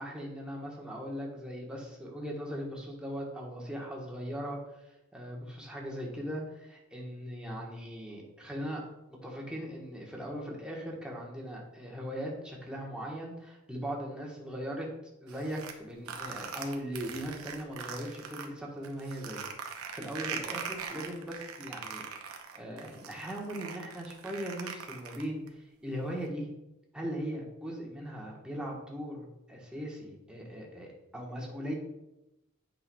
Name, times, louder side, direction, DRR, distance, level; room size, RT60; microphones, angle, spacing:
voice 1, 0.0-4.6 5.1-8.8 9.2-14.9 15.2-19.4 19.7-26.5 26.9-31.7, equal, 5° right, -3 dB, 1.2 m, -39 dB
sound 1, 15.3-18.5 18.8-25.5, right 6 dB, 80° right, 0.8 m, -41 dB
8.7 x 5.7 x 2.3 m, 0.92 s
head